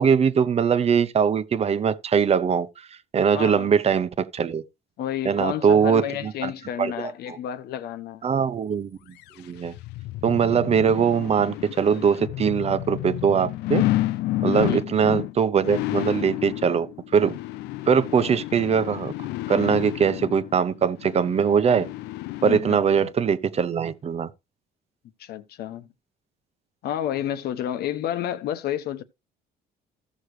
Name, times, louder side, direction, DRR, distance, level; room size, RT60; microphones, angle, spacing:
voice 1, 0.0-2.7 3.1-4.6 5.2-6.5 6.8-7.4 8.2-9.0 9.4-9.7 10.2-13.8 14.4-16.9 17.1-17.3 17.9-19.1 19.5-21.9 22.4-24.3, right 7 dB, 40° right, 0.9 m, -21 dB
voice 2, 3.3-3.7 5.0-8.2 14.4-14.8 22.4-22.8 25.2-25.9 26.8-29.0, left 10 dB, 70° left, 1.1 m, -30 dB
sound 1, 9.2-23.1 23.5-23.6, left 16 dB, 85° left, 0.5 m, -31 dB
15.0 x 6.3 x 3.3 m
cardioid pair, 110°, 17 cm